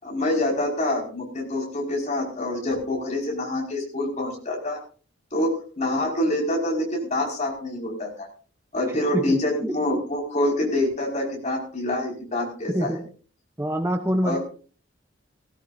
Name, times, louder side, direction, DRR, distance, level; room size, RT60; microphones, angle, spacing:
voice 1, 0.0-4.8 5.3-8.3 8.7-13.0 14.2-14.4, left 1 dB, 35° left, -1 dB, 5.2 m, -26 dB
voice 2, 9.1-9.7 12.7-13.1 13.6-14.4, equal, 15° right, 6 dB, 0.8 m, -26 dB
18.5 x 16.5 x 2.6 m, 0.39 s
head